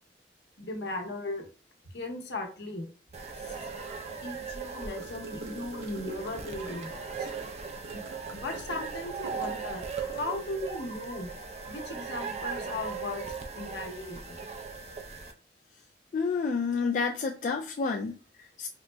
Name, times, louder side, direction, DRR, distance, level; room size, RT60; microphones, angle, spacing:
voice 1, 0.6-1.5 1.9-2.9 3.5-3.6 4.2-7.3 7.9-8.0 8.3-11.3 11.7-13.3 13.5-14.5, left 2 dB, 75° left, 2 dB, 0.8 m, -37 dB
sound 1, 3.1-15.3, right 5 dB, 40° right, 0.4 m, -38 dB
Gurgling / Car passing by / Sink (filling or washing), 5.0-10.6, right 2 dB, 85° right, 0.7 m, -46 dB
voice 2, 16.1-18.7, left 5 dB, 45° left, 1 dB, 0.3 m, -30 dB
3.8 x 2.0 x 3.3 m, 0.38 s
head